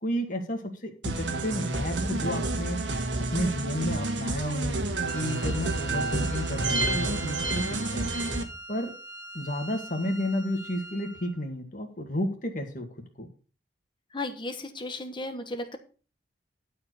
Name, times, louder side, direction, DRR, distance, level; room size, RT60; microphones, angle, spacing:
voice 1, 0.0-2.8 3.3-4.8 5.1-8.1 8.7-8.9 9.3-12.9 13.2-13.3, equal, 45° left, 3 dB, 2.0 m, -32 dB
sound 1, 1.0-8.4, right 2 dB, 80° right, 1.6 m, -29 dB
Wind instrument woodwind instrument, 5.1-11.4, equal, 75° left, 1.7 m, -44 dB
voice 2, 14.1-15.8, left 2 dB, 25° left, 7 dB, 1.3 m, -35 dB
11.5 x 4.9 x 6.3 m, 0.38 s
head